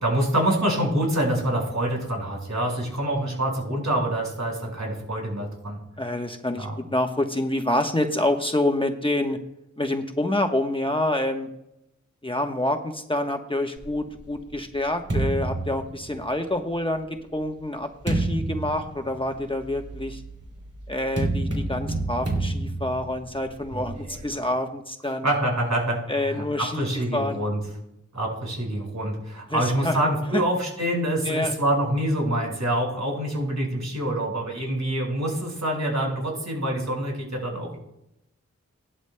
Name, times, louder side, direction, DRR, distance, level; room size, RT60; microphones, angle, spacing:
voice 1, 0.0-5.8 6.6-6.8 23.7-24.0 24.3-24.5 25.2-27.6 28.1-37.8, right 1 dB, 70° right, -1 dB, 5.2 m, -26 dB
voice 2, 6.0-9.4 9.8-11.5 12.2-20.2 20.9-25.3 26.1-27.4 29.5-30.0 30.3-30.4 31.2-31.5, left 1 dB, 15° left, 4 dB, 1.1 m, -27 dB
sound 1, 13.8-16.6 17.3-24.3, right 2 dB, 55° right, 2.8 m, -30 dB
19.0 x 11.5 x 2.2 m, 0.84 s
wide cardioid pair, 65°, 30 cm